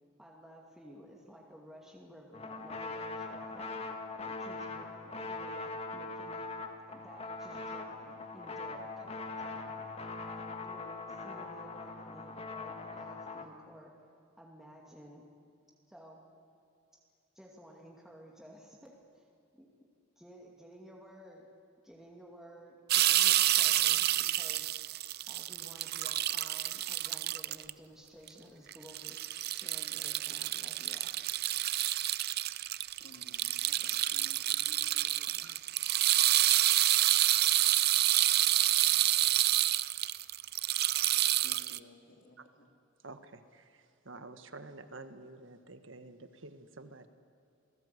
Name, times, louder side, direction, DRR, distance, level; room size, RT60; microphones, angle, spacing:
voice 1, 0.2-3.7 4.2-6.4 6.9-9.9 10.3-13.9 14.4-15.3 15.9-16.2 17.3-19.3 19.5-19.7 20.2-21.5 21.8-24.8 25.3-29.2 29.6-31.1, equal, ahead, -2 dB, 2.4 m, -54 dB
sound 1, 2.3-13.4, left 3 dB, 30° left, 1.7 m, -41 dB
sound 2, 22.9-27.7 28.3-28.4 28.7-41.8, right 14 dB, 50° right, 0.5 m, -28 dB
voice 2, 33.0-35.6 41.4-42.7, left 1 dB, 65° left, 2 dB, 3.3 m, -57 dB
voice 3, 43.0-43.7 44.0-47.1, right 2 dB, 65° right, 9 dB, 1.6 m, -49 dB
28.0 x 19.5 x 8.3 m, 2.6 s
head